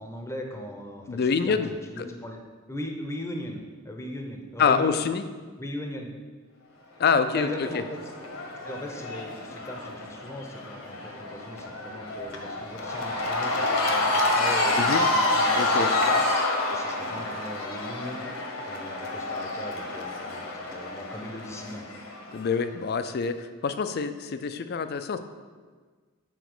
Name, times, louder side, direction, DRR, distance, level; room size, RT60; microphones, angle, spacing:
voice 1, 0.0-2.4 2.7-5.0 5.6-6.1 7.3-8.0 8.6-22.0, left 1 dB, 15° left, 2 dB, 0.7 m, -39 dB
voice 2, 1.1-1.7 2.0-2.1 4.6-5.3 7.0-7.5 7.7-7.8 14.8-15.0 15.6-15.9 22.3-25.2, left 5 dB, 50° left, 10 dB, 0.4 m, -26 dB
Cheering / Crowd, 7.2-22.5, left 2 dB, 65° left, 1.1 m, -28 dB
7.0 x 4.1 x 6.1 m, 1.5 s
head